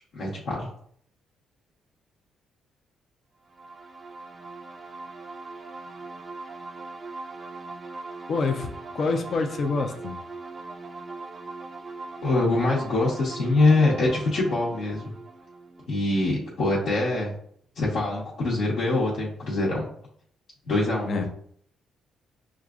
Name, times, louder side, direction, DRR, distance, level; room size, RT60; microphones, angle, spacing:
voice 1, 0.1-0.7 12.2-15.1 15.9-17.3 17.7-19.8 20.7-21.3, left 2 dB, 70° left, -7 dB, 1.2 m, -24 dB
sound 1, 3.5-17.0, right 3 dB, 30° right, 0.6 m, -40 dB
voice 2, 8.3-10.2 21.1-21.3, left 4 dB, 50° left, 5 dB, 0.5 m, -27 dB
6.3 x 2.4 x 2.4 m, 0.64 s
cardioid pair, 90°, 0 cm